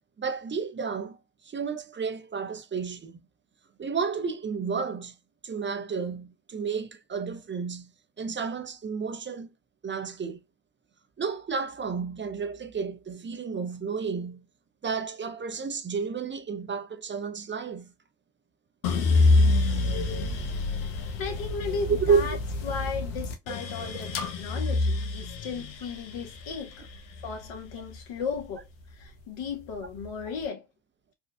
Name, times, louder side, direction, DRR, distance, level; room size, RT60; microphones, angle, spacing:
voice 1, 0.2-1.2 1.4-3.2 3.8-5.1 5.4-7.9 8.2-9.5 9.8-10.4 11.2-14.4 14.8-17.9 21.9-22.4, right 5 dB, 25° right, 0.6 m, -31 dB
sound 1, 18.8-29.0 29.5-30.3, left 3 dB, 90° left, 0.8 m, -27 dB
voice 2, 21.2-22.4 22.6-26.9 27.2-28.6 29.0-30.6, left 5 dB, 65° left, 1.4 m, -35 dB
4.2 x 2.4 x 2.3 m
hypercardioid pair, 60°, 50 cm